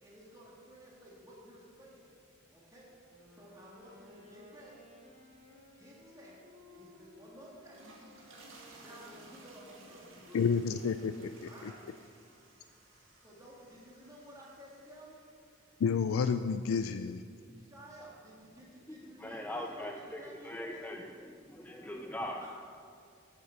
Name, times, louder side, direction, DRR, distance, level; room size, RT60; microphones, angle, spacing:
voice 1, 0.0-2.0 2.5-2.9 3.3-4.8 5.7-6.4 6.7-7.8 8.6-10.5 11.4-11.8 13.2-15.2 17.6-20.8 22.4-22.5, equal, 15° right, -5 dB, 1.6 m, -53 dB
Wind instrument woodwind instrument, 3.0-11.1, left 1 dB, 50° right, 2.4 m, -59 dB
sound 1, 7.5-15.9, right 2 dB, 75° right, 1.9 m, -58 dB
voice 2, 10.3-11.5 15.8-17.2, left 6 dB, 85° left, 10 dB, 0.3 m, -30 dB
voice 3, 19.2-22.5, left 1 dB, 10° left, 2 dB, 0.4 m, -41 dB
8.6 x 8.1 x 6.2 m, 2.2 s
head